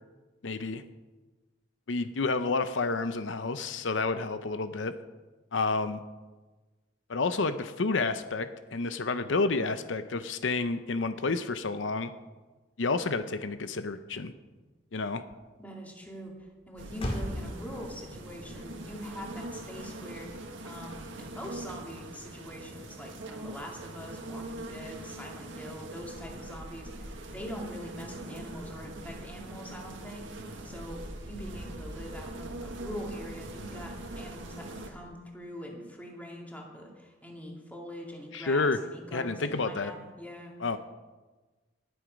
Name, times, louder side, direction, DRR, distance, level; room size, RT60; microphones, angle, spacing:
voice 1, 0.4-0.8 1.9-4.9 5.5-6.0 7.1-12.1 12.8-14.3 14.9-15.2 38.3-38.8 39.1-39.9 40.6-40.8, left 3 dB, 85° left, 11 dB, 0.7 m, -30 dB
Motor vehicle (road), 14.3-21.5, equal, 30° left, 2.4 m, -43 dB
voice 2, 15.6-16.3 16.7-40.8, equal, 10° left, -1 dB, 2.4 m, -43 dB
sound 1, 16.8-34.9, right 1 dB, 90° right, 1.7 m, -42 dB
19.0 x 7.9 x 5.2 m, 1.2 s
head